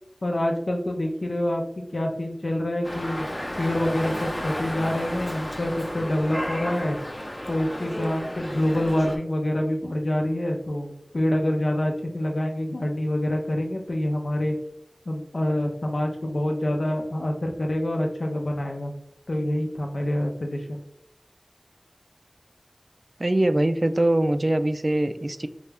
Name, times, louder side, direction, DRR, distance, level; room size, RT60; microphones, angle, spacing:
voice 1, 0.2-1.6 1.9-3.3 3.6-7.0 7.5-14.6 15.1-18.9 19.3-20.8, left 1 dB, 75° left, 1 dB, 0.7 m, -26 dB
Dog, 2.8-9.2, equal, 30° left, 0.7 m, -33 dB
voice 2, 23.2-25.5, right 1 dB, 50° right, 9 dB, 0.3 m, -22 dB
4.2 x 2.4 x 3.3 m, 0.76 s
wide cardioid pair, 45°, 0 cm